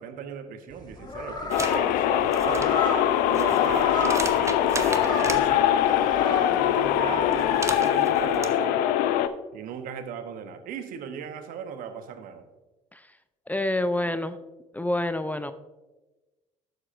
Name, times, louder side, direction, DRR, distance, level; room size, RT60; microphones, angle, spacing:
voice 1, 0.0-2.7 3.3-5.8 6.2-8.9 9.5-12.5, right 7 dB, 60° right, 9 dB, 0.9 m, -37 dB
sound 1, 0.7-7.6, left 2 dB, 30° left, 2.4 m, -33 dB
sound 2, 1.5-9.3, left 11 dB, 65° left, 0.5 m, -23 dB
sound 3, 1.5-1.8 2.2-5.4 7.3-8.5, right 3 dB, 20° right, 0.8 m, -35 dB
voice 2, 13.5-14.4 14.7-15.5, left 1 dB, 10° left, 11 dB, 0.5 m, -27 dB
11.0 x 7.3 x 2.5 m, 1.1 s
hypercardioid pair, 55°, 16 cm